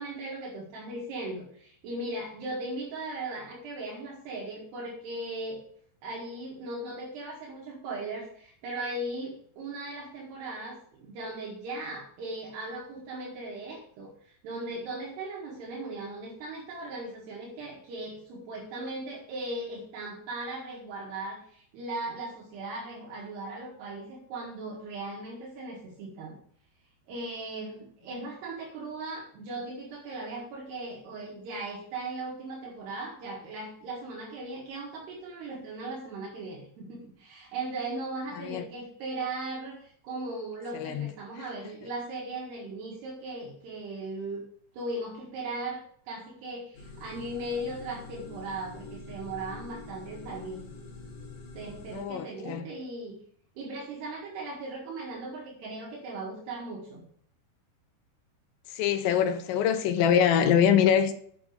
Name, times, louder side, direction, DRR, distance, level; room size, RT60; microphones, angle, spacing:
voice 1, 0.0-5.6 6.0-26.4 27.1-44.4 44.7-45.8 46.1-50.6 51.5-53.2 53.6-57.0, right 2 dB, 70° right, 3.8 m, -38 dB
sound 1, 46.7-52.0, left 3 dB, 50° left, 3.5 m, -45 dB
voice 2, 51.9-52.6 58.7-61.1, left 8 dB, 90° left, 3.2 m, -24 dB
8.8 x 6.1 x 6.4 m
omnidirectional pair, 5.0 m